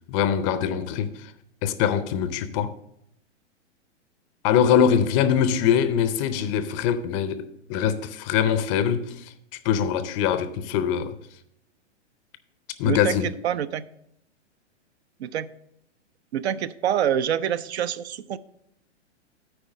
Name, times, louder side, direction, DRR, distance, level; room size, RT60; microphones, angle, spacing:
voice 1, 0.1-1.3 1.6-2.8 4.4-9.3 9.6-11.2 12.8-13.3, left 8 dB, 30° left, 0.5 m, -23 dB
voice 2, 12.8-13.1 13.4-13.8 15.2-15.5 16.3-18.4, right 10 dB, 65° right, 0.6 m, -26 dB
9.1 x 4.6 x 7.2 m
hypercardioid pair, 120°, 36 cm